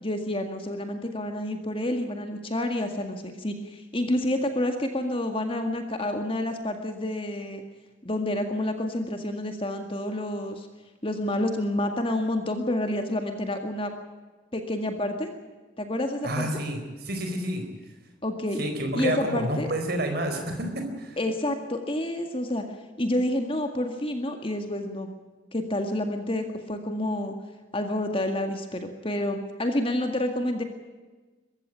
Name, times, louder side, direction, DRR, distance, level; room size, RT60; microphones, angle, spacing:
voice 1, 0.0-7.6 8.0-10.7 11.0-13.9 14.5-15.3 15.8-16.5 18.2-18.6 19.0-19.7 21.2-22.7 23.0-25.1 25.5-27.3 27.7-30.6, left 1 dB, 25° left, 5 dB, 1.9 m, -29 dB
voice 2, 16.2-16.8 17.1-17.6 18.6-21.2, right 1 dB, 50° right, 5 dB, 4.4 m, -29 dB
23.0 x 15.0 x 9.0 m, 1.3 s
head